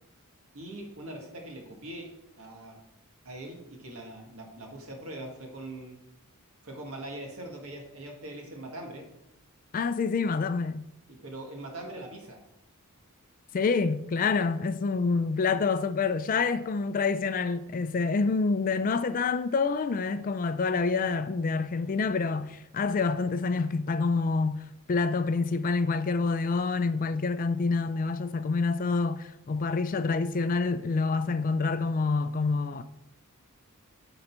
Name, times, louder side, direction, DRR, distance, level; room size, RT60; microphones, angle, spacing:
voice 1, 0.5-2.1 2.4-2.8 3.3-6.0 6.6-9.0 11.1-12.4, right 1 dB, 70° right, 1.7 m, -42 dB
voice 2, 9.7-10.9 13.5-32.8, left 4 dB, 40° left, 0.4 m, -27 dB
9.6 x 3.9 x 4.5 m
head